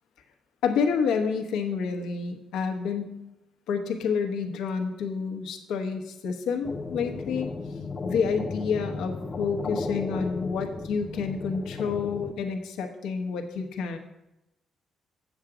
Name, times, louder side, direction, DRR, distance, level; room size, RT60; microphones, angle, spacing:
voice 1, 0.6-3.2 3.7-7.5 8.0-14.0, left 6 dB, 90° left, 5 dB, 1.0 m, -29 dB
sound 1, 6.6-12.3, left 3 dB, 35° left, 0.7 m, -34 dB
7.8 x 7.2 x 4.9 m, 0.91 s
cardioid pair, 90°, 0 cm